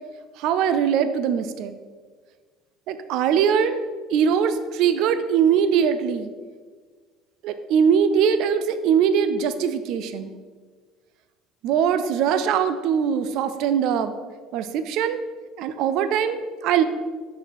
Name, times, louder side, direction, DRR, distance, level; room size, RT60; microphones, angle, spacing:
voice 1, 0.4-1.7 2.9-3.8 4.1-6.3 7.4-10.3 11.6-14.1 14.5-15.2 15.6-16.8, right 7 dB, 55° right, 11 dB, 0.4 m, -21 dB
6.6 x 6.2 x 4.3 m, 1.5 s
cardioid pair, 175°, 0 cm